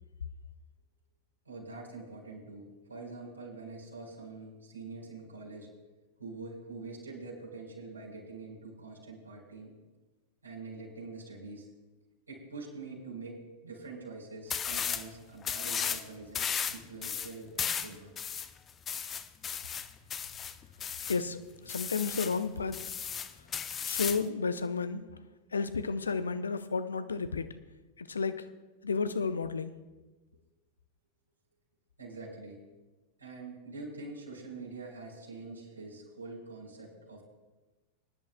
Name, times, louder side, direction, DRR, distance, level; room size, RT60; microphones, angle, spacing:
voice 1, 1.4-5.7 6.2-9.7 10.4-11.7 12.3-18.2 32.0-32.6 33.2-37.2, right 3 dB, 80° right, 4.1 m, -45 dB
sound 1, 14.5-15.1 15.4-16.0 16.3-21.2 21.7-22.4 22.7-24.3, left 7 dB, 25° left, 0.6 m, -35 dB
voice 2, 21.1-23.0 23.8-25.2 25.5-27.6 28.0-28.5 28.8-29.7, left 4 dB, 75° left, 0.6 m, -32 dB
23.0 x 11.0 x 2.2 m
figure-of-eight pair, 90°, 0 cm